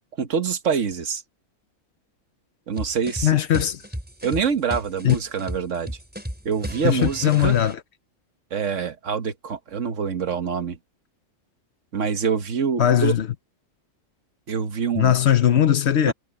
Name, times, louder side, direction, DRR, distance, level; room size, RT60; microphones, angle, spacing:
voice 1, 0.2-1.2 2.7-3.4 4.2-6.0 6.4-7.5 8.5-10.8 11.9-13.1 14.5-15.2 16.0-16.1, right 6 dB, 70° right, 1.6 m, -25 dB
sound 1, 2.8-7.7, equal, 5° right, 4.5 m, -34 dB
voice 2, 3.2-3.8 5.0-5.2 6.8-7.8 12.8-13.3 15.0-16.1, left 10 dB, 60° left, 1.0 m, -19 dB
omnidirectional pair, 1.4 m